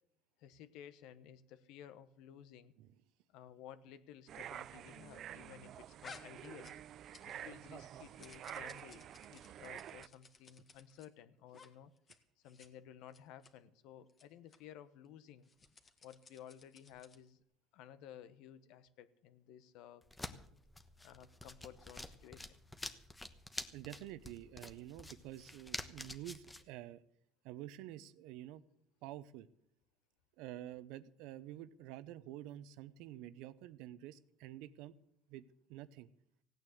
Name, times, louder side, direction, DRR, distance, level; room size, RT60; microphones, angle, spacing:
voice 1, 0.4-2.7 3.3-6.7 7.2-11.9 12.4-15.5 16.0-17.4 17.7-20.0 21.0-22.5, left 10 dB, 70° left, 14 dB, 1.0 m, -55 dB
sound 1, 4.3-10.1, right 10 dB, 50° right, 0.5 m, -49 dB
sound 2, 6.0-7.5 7.8-11.1 11.5-11.7 12.0-12.2 12.4-12.7 13.1-13.5 14.1-14.2 14.5-14.6 15.4-17.3, left 4 dB, 30° left, 1.7 m, -58 dB
sound 3, 20.0-26.6, left 2 dB, 10° left, 1.1 m, -48 dB
voice 2, 23.7-27.0 27.4-28.6 29.0-29.5 30.4-34.9 35.3-36.1, right 13 dB, 75° right, 16 dB, 0.8 m, -49 dB
16.0 x 9.3 x 7.9 m, 0.71 s
supercardioid pair, 110°, 0 cm